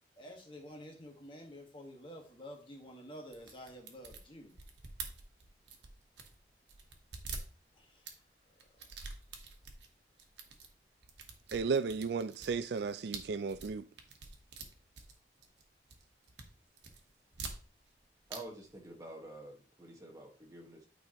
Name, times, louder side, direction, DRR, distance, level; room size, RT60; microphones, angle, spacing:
voice 1, 0.2-4.6 7.7-8.1 8.5-8.6, equal, 30° left, 1.6 m, -50 dB
sound 1, 3.3-6.4 6.7-8.2 8.6-9.9 10.2-10.7 11.0-15.6 15.9-16.5 16.8-18.0 18.3-18.4 18.7-18.8, right 4 dB, 90° right, 1.2 m, -46 dB
voice 2, 11.5-13.9, right 5 dB, 70° right, 0.4 m, -34 dB
voice 3, 18.3-20.9, right 1 dB, 20° right, 1.5 m, -49 dB
9.1 x 4.9 x 3.0 m
head